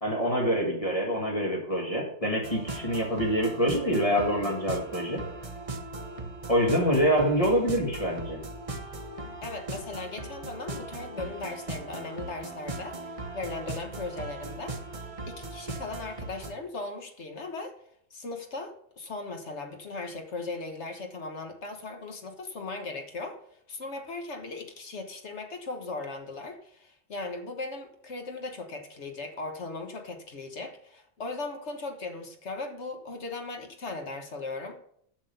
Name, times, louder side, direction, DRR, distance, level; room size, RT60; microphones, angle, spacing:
voice 1, 0.0-5.2 6.5-8.4, equal, 25° left, -1 dB, 1.7 m, -26 dB
sound 1, 2.4-16.5, right 2 dB, 30° right, 0.9 m, -39 dB
voice 2, 9.4-14.8 15.3-17.7 18.1-23.4 23.7-34.8, left 3 dB, 60° left, 6 dB, 1.5 m, -38 dB
7.5 x 6.2 x 6.8 m, 0.67 s
omnidirectional pair, 1.3 m